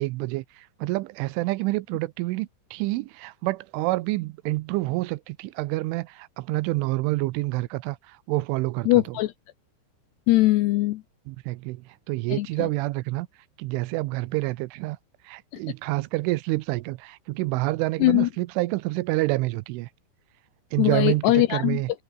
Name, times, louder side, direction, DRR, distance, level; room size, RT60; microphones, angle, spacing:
voice 1, 0.0-8.9 11.3-13.3 13.6-15.0 15.2-19.9 20.7-21.9, right 20 dB, 90° right, 3.2 m, -28 dB
voice 2, 8.9-9.3 10.3-11.0 12.3-12.7 18.0-18.3 20.8-21.8, left 17 dB, 80° left, 2.5 m, -21 dB
omnidirectional pair, 5.6 m